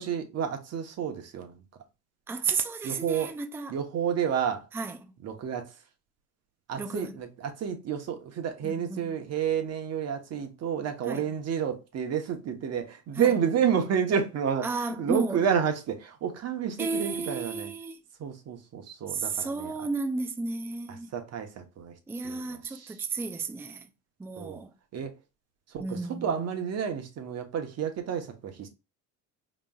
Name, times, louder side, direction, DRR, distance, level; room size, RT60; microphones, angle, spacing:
voice 1, 0.0-1.6 2.8-3.3 3.7-4.7 5.2-5.7 6.7-17.7 18.2-19.7 20.9-21.9 22.2-23.0 24.4-24.6 24.9-25.1 25.7-28.7, right 8 dB, 45° right, 1.1 m, -30 dB
voice 2, 2.3-3.7 4.7-5.1 6.8-7.2 8.6-9.2 11.1-11.2 13.2-13.4 14.6-15.4 16.8-18.0 19.1-21.1 22.1-23.9 24.2-24.7 25.8-26.3, right 4 dB, 5° right, 0.4 m, -33 dB
4.9 x 3.1 x 2.3 m
supercardioid pair, 105°, 35 cm